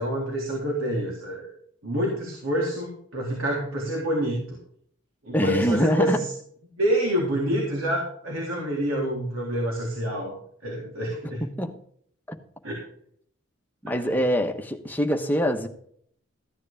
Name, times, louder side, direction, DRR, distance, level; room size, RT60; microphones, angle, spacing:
voice 1, 0.0-1.5 1.8-4.6 5.2-6.3 6.8-10.3 10.6-11.4 12.6-12.8, equal, 85° right, -2 dB, 3.6 m, -27 dB
voice 2, 5.3-6.2 11.2-11.8 13.8-15.7, equal, 10° left, 4 dB, 1.2 m, -24 dB
15.0 x 9.7 x 3.6 m, 0.63 s
head